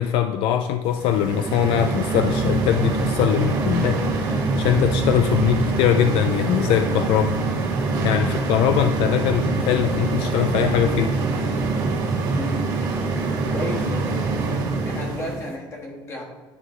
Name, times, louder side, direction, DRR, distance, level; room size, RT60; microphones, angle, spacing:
voice 1, 0.0-7.7 8.0-11.1, left 10 dB, 75° left, 7 dB, 0.4 m, -22 dB
sound 1, 0.9-15.5, right 3 dB, 45° right, 1.7 m, -24 dB
voice 2, 12.3-12.6 13.3-14.3 14.8-16.2, left 1 dB, 30° left, -1 dB, 1.4 m, -33 dB
10.0 x 3.8 x 3.1 m, 1.4 s
cardioid pair, 155°, 9 cm